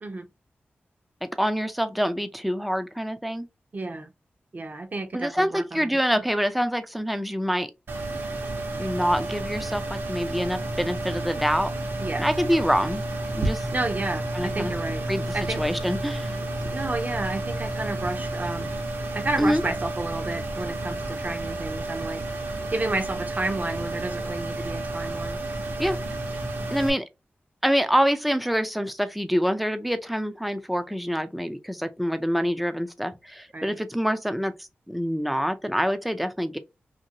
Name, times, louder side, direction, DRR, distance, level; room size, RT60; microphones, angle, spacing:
voice 1, 1.2-3.5 5.1-7.7 8.8-11.7 12.2-13.0 13.3-13.7 14.3-14.7 15.1-16.4 19.4-19.6 25.8-26.0 26.7-27.1 27.6-36.6, equal, ahead, 0.4 m, -26 dB
voice 2, 3.7-4.1 4.5-5.9 12.0-12.3 13.7-15.0 15.3-15.6 16.7-18.7 19.1-22.2 22.7-25.4 33.5-33.8, right 2 dB, 40° right, 0.7 m, -31 dB
sound 1, 7.9-26.9, right 2 dB, 65° right, 1.0 m, -31 dB
2.7 x 2.6 x 2.8 m
wide cardioid pair, 90°, 4 cm